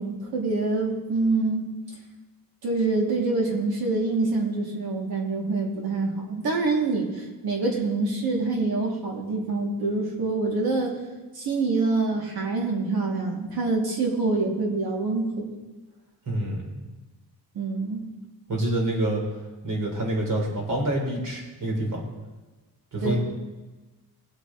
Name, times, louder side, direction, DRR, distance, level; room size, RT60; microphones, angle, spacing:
voice 1, 0.0-1.7 2.6-11.0 11.3-15.5 17.5-18.0 23.0-23.2, right 3 dB, 85° right, -1 dB, 2.7 m, -26 dB
voice 2, 16.3-16.8 18.5-19.2 19.6-22.0 22.9-23.2, right 1 dB, 55° right, -1 dB, 3.5 m, -27 dB
20.0 x 8.4 x 3.1 m, 1.2 s
wide cardioid pair, 135°, 37 cm